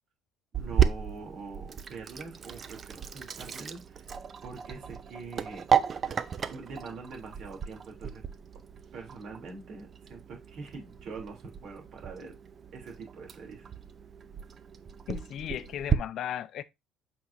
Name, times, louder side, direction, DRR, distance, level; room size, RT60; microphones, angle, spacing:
Sink (filling or washing), 0.5-16.0, right 8 dB, 40° right, 0.6 m, -33 dB
voice 1, 0.5-4.0 4.4-5.6 6.5-8.2 8.9-12.3 12.7-13.7, right 4 dB, 60° right, 3.2 m, -44 dB
voice 2, 15.1-16.6, left 10 dB, 60° left, 0.5 m, -36 dB
7.7 x 4.9 x 2.7 m
supercardioid pair, 90°, 0 cm